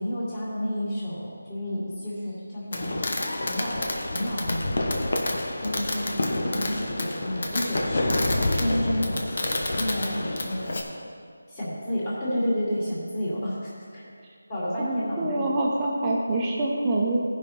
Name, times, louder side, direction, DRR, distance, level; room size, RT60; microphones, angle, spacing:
voice 1, 0.0-3.1 3.4-5.1 5.6-10.9 11.5-14.0 14.5-15.5, equal, 15° left, -8 dB, 2.3 m, -31 dB
Fireworks, 2.7-10.8, left 2 dB, 45° left, 1.0 m, -28 dB
voice 2, 14.8-17.2, right 2 dB, 10° right, -4 dB, 0.9 m, -25 dB
16.0 x 5.4 x 4.2 m, 2.2 s
figure-of-eight pair, 175°, 0 cm